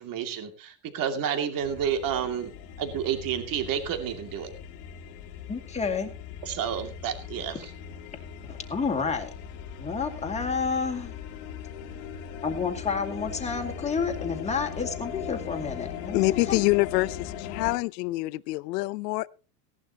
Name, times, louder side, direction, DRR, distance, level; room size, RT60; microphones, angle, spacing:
voice 1, 0.0-2.5 2.8-4.5 6.4-7.7, right 8 dB, 45° right, 2.6 m, -30 dB
sound 1, 1.6-17.8, left 8 dB, 70° left, 2.1 m, -39 dB
voice 2, 5.5-6.1 8.4-9.3 9.8-11.1 12.4-16.2 16.5-16.6, left 5 dB, 15° left, 2.4 m, -30 dB
voice 3, 16.1-19.3, left 21 dB, 90° left, 0.7 m, -26 dB
17.5 x 11.5 x 2.9 m
supercardioid pair, 130°, 48 cm